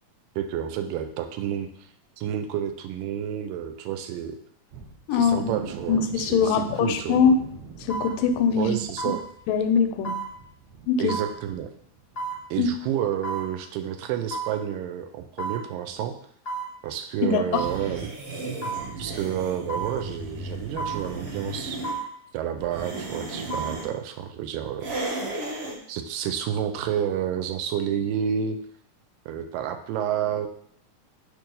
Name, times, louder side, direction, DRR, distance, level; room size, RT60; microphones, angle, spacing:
voice 1, 0.4-1.7 2.2-4.4 5.1-7.2 8.5-9.2 11.0-11.7 12.5-16.2 16.8-18.1 19.0-21.8 22.3-24.9 25.9-28.6 29.3-30.5, right 9 dB, 85° right, 7 dB, 2.3 m, -30 dB
sound 1, 4.7-12.5 12.7-12.9 13.3-13.4, right 5 dB, 70° right, 1.9 m, -45 dB
voice 2, 5.1-5.5 5.9-7.4 7.8-8.7 9.1-9.2 9.5-10.1 10.9-11.1 12.6-12.7 17.2-17.6, left 6 dB, 80° left, 8 dB, 2.1 m, -22 dB
sound 2, 6.7-6.9 7.9-8.1 9.0-9.2 10.0-10.3 11.1-11.3 12.2-12.4 13.2-13.5 14.3-14.6 15.4-15.6 16.4-16.7 17.5-17.8 18.6-18.9 19.7-19.9 20.8-21.0 21.8-22.1 23.3-23.8 24.2-24.3, right 3 dB, 50° left, 0.7 m, -31 dB
sound 3, 17.5-22.0 22.6-23.9 24.8-25.8, right 2 dB, 55° right, 1.7 m, -34 dB
6.7 x 3.1 x 5.3 m, 0.64 s
omnidirectional pair, 3.9 m